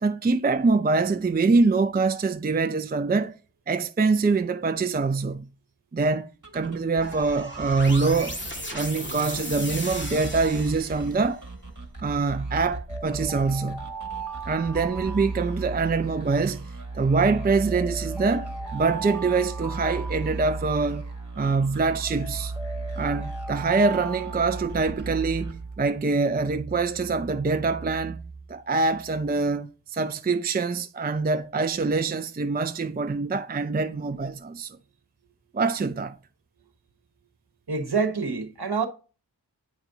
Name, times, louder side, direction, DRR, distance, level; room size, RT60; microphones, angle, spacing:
voice 1, 0.0-3.3 3.7-5.5 5.9-8.4 8.7-11.4 12.0-13.8 14.5-16.7 16.9-21.0 21.4-22.5 23.0-28.2 28.5-34.8 35.5-36.2, right 4 dB, 25° right, 0.4 m, -24 dB
sound 1, 6.3-26.1, right 3 dB, 45° right, 1.7 m, -36 dB
sound 2, 7.0-11.3, equal, 25° left, 2.0 m, -36 dB
sound 3, 12.9-16.1 17.2-21.0 22.1-25.3, right 4 dB, 5° left, 1.1 m, -39 dB
voice 2, 37.7-38.9, right 5 dB, 65° right, 1.2 m, -26 dB
8.2 x 5.0 x 2.7 m
wide cardioid pair, 45°, 42 cm